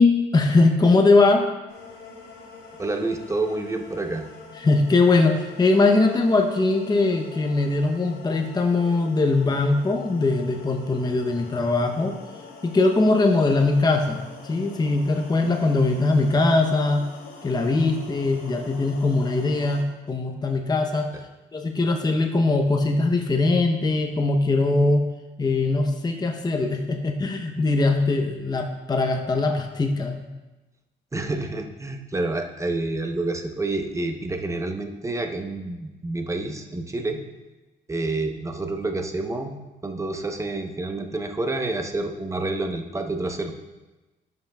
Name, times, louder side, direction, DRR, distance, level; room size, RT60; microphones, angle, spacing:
voice 1, 0.0-1.5 4.6-12.2 12.6-17.1 17.4-21.1 21.5-25.0 25.4-30.2, left 3 dB, 20° left, 3 dB, 0.7 m, -21 dB
sound 1, 1.7-19.8, left 4 dB, 80° left, 2.6 m, -44 dB
voice 2, 2.8-4.3 31.1-37.2 37.9-39.6 39.8-43.5, right 2 dB, 15° right, 4 dB, 0.8 m, -28 dB
11.5 x 5.7 x 2.3 m, 1.1 s
cardioid pair, 90°, 20 cm